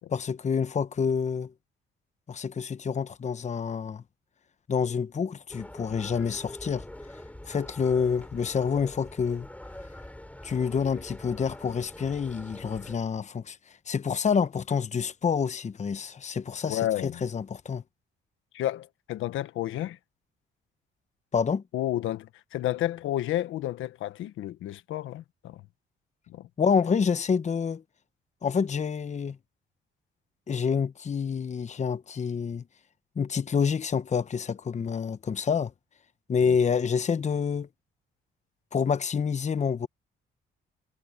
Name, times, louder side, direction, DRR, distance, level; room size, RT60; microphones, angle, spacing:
voice 1, 0.1-1.5 2.3-4.0 4.7-6.9 7.4-9.5 10.4-13.6 13.9-17.8 21.3-21.6 26.6-27.8 28.4-29.4 30.5-32.6 33.2-35.7 36.3-37.7 38.7-39.9, left 6 dB, 35° left, 1.0 m, -27 dB
sound 1, 5.5-12.9, left 1 dB, 5° left, 5.6 m, -44 dB
voice 2, 16.7-17.2 18.5-20.0 21.7-25.6 26.3-26.5 36.4-36.5, left 13 dB, 85° left, 1.3 m, -31 dB
cardioid pair, 90°, 20 cm